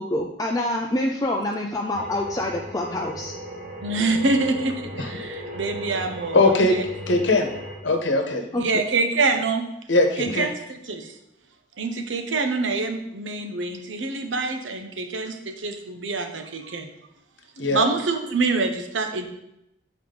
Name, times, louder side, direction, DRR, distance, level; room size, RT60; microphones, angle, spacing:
voice 1, 0.0-3.3 8.5-8.6, left 1 dB, 20° left, 0 dB, 0.4 m, -26 dB
sound 1, 1.9-7.8, right 1 dB, 40° right, 1.0 m, -36 dB
voice 2, 3.8-6.8 8.5-9.6 10.2-11.1 11.8-16.9 17.7-19.3, right 3 dB, 80° right, 5 dB, 0.8 m, -26 dB
voice 3, 6.3-6.8 7.1-7.5 7.8-8.4 9.9-10.5 17.6-17.8, left 2 dB, 75° left, 4 dB, 1.0 m, -20 dB
7.8 x 4.5 x 3.9 m, 0.82 s
head